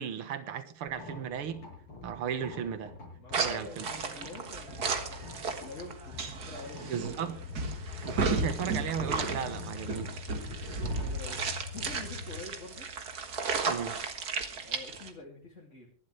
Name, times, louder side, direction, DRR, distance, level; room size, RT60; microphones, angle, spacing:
voice 1, 0.0-1.7 2.0-3.0 3.4-3.9 6.9-7.8 8.0-10.3 13.7-14.0, right 8 dB, 80° right, 2.2 m, -36 dB
sound 1, 0.9-15.1, left 3 dB, 80° left, 6.7 m, -48 dB
voice 2, 3.2-7.1 10.9-12.9 14.6-15.9, left 2 dB, 35° left, 3.0 m, -47 dB
sound 2, 3.3-15.1, right 4 dB, 45° right, 2.0 m, -34 dB
sound 3, 7.4-12.5, left 6 dB, 60° left, 1.4 m, -43 dB
24.0 x 12.0 x 3.3 m
omnidirectional pair, 2.4 m